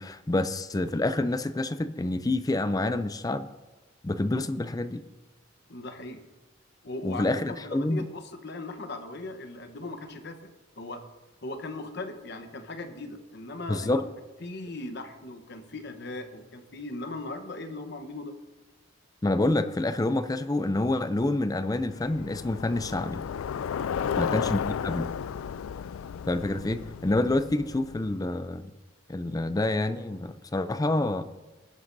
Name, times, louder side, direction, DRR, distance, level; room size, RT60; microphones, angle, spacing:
voice 1, 0.0-3.5 4.0-5.0 7.0-8.0 13.7-14.0 19.2-23.2 24.2-25.1 26.3-28.7 29.1-31.3, left 2 dB, 20° left, 0.4 m, -27 dB
voice 2, 5.7-6.2 6.8-10.5 10.8-11.0 11.4-14.0 14.4-18.3 23.9-24.3, left 2 dB, 55° left, 1.0 m, -38 dB
Bicycle, 21.8-28.3, left 7 dB, 85° left, 0.3 m, -34 dB
19.5 x 9.7 x 2.7 m
head